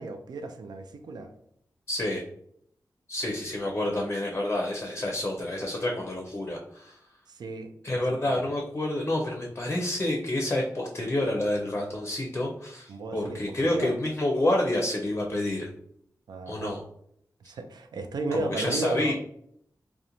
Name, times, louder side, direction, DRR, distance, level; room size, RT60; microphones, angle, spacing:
voice 1, 0.0-1.3 5.9-6.0 7.3-8.4 12.9-13.9 16.3-16.8 17.4-19.1, right 2 dB, 80° right, 7 dB, 0.3 m, -34 dB
voice 2, 1.9-2.2 3.1-7.0 7.8-15.7 16.5-16.8 18.3-19.1, left 1 dB, 30° left, 0 dB, 0.5 m, -28 dB
2.5 x 2.1 x 2.8 m, 0.70 s
cardioid pair, 65°, 7 cm